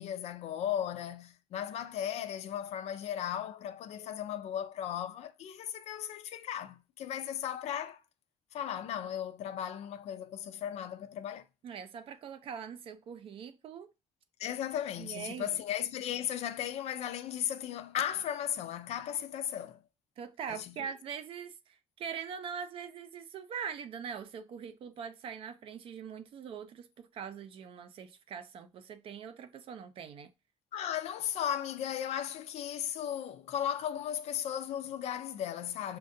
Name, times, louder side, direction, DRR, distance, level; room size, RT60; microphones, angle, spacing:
voice 1, 0.0-8.0 8.5-11.4 14.4-19.8 20.5-20.9 30.7-36.0, left 10 dB, 70° left, 0.5 m, -36 dB
voice 2, 11.6-13.9 15.0-15.6 20.2-21.5 22.0-30.3, right 7 dB, 55° right, 0.5 m, -42 dB
6.4 x 2.3 x 2.6 m
cardioid pair, 155°, 11 cm